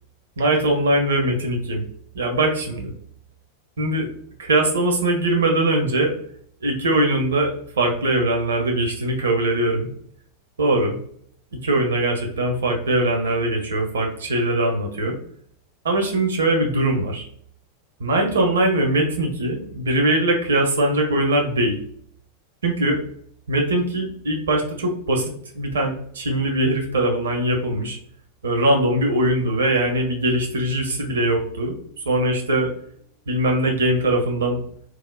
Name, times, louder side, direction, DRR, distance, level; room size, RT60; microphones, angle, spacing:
voice 1, 0.4-1.8 2.1-2.9 3.8-4.1 4.4-6.1 6.6-9.9 10.6-11.0 11.6-15.2 15.8-17.2 18.0-21.8 22.6-23.0 23.5-28.0 28.4-31.8 32.1-32.7 33.3-34.6, right 1 dB, 65° right, 2 dB, 0.6 m, -21 dB
3.0 x 2.0 x 2.2 m, 0.62 s
figure-of-eight pair, 90°, 0 cm